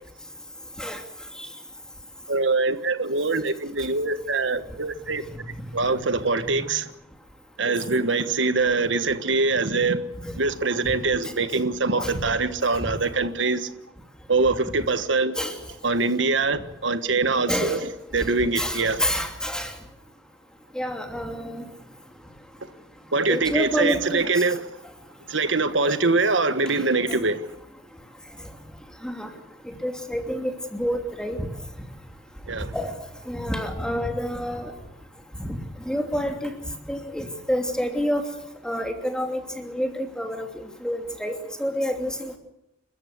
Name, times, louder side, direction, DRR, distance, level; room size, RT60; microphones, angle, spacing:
voice 1, 2.3-5.2 5.7-6.9 7.6-10.0 10.4-13.7 14.3-15.3 15.8-17.8 18.1-19.0 23.1-24.6 25.3-27.4 32.5-32.7, right 3 dB, 75° right, 1.4 m, -23 dB
voice 2, 17.5-17.9 18.6-19.7 20.7-21.6 23.2-24.2 25.8-25.9 29.0-29.3 29.7-31.4 32.7-32.9 33.3-34.7 35.5-35.6 35.8-36.5 36.9-38.2 38.6-40.4 40.8-42.4, equal, 5° left, 2.9 m, -28 dB
30.0 x 14.0 x 8.2 m
head